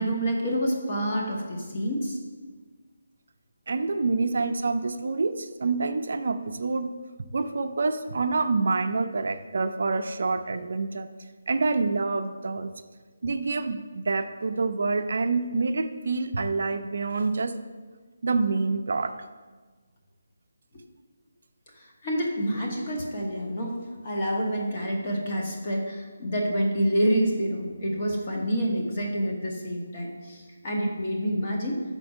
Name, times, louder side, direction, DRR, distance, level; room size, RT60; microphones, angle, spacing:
voice 1, 0.0-2.2 21.7-31.8, equal, 35° left, -1 dB, 1.1 m, -28 dB
voice 2, 3.7-6.9 7.3-11.1 11.5-12.7 13.2-17.5 18.2-19.1, right 3 dB, 60° right, 8 dB, 0.4 m, -27 dB
5.3 x 4.3 x 5.9 m, 1.4 s
hypercardioid pair, 170°, 0 cm